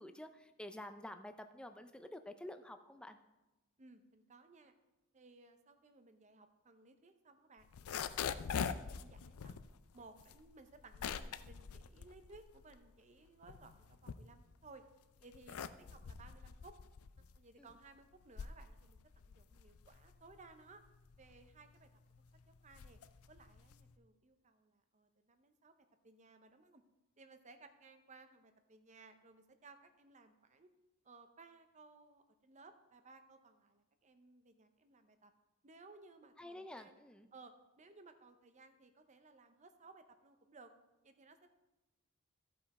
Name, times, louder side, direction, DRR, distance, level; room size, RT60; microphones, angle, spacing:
voice 1, 0.0-3.2 17.6-17.7 36.4-37.3, left 1 dB, 5° left, 8 dB, 0.4 m, -50 dB
voice 2, 3.8-4.7 5.1-9.6 9.9-14.8 15.2-16.7 17.3-20.8 21.2-21.9 22.2-23.0 23.3-25.7 26.0-26.8 27.2-30.7 31.0-35.3 35.6-37.0 37.3-40.7 41.0-41.4, right 3 dB, 35° right, 8 dB, 0.7 m, -60 dB
sound 1, 7.6-12.9 13.3-14.7 15.2-23.9, left 7 dB, 80° left, 0.4 m, -44 dB
14.5 x 5.5 x 4.2 m, 1.0 s
head